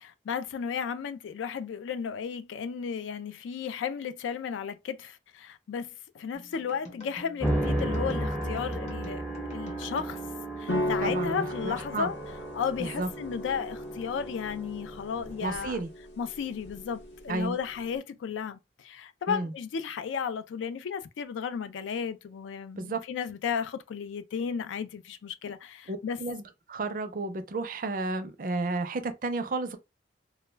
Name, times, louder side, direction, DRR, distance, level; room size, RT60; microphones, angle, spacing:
voice 1, 0.0-9.2 9.5-10.2 10.6-12.2 12.5-15.8 16.2-26.2, left 7 dB, 90° left, 0.3 m, -34 dB
sound 1, 6.3-11.2, left 1 dB, 35° left, 0.8 m, -48 dB
sound 2, 7.4-15.8, right 1 dB, 10° left, 0.5 m, -34 dB
sound 3, 10.7-18.0, left 1 dB, 70° left, 0.8 m, -36 dB
voice 2, 11.0-12.1 12.8-13.1 15.4-15.9 17.3-17.6 19.3-19.5 22.8-23.0 25.9-26.4 26.7-29.8, right 3 dB, 45° right, 0.4 m, -32 dB
2.2 x 2.1 x 3.2 m
head